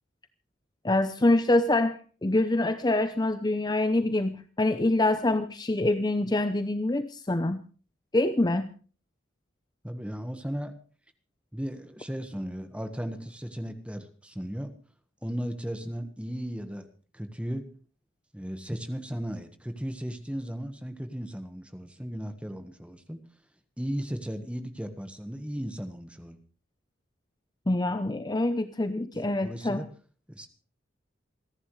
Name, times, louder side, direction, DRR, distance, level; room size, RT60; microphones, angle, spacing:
voice 1, 0.8-7.6 8.1-8.7 27.7-29.9, left 2 dB, 20° left, 10 dB, 0.6 m, -25 dB
voice 2, 9.8-10.7 11.5-14.7 15.2-16.9 17.1-17.7 18.3-23.2 23.8-26.4 29.3-29.9 30.3-30.5, equal, 5° right, 8 dB, 1.4 m, -36 dB
28.5 x 11.0 x 3.2 m, 0.39 s
head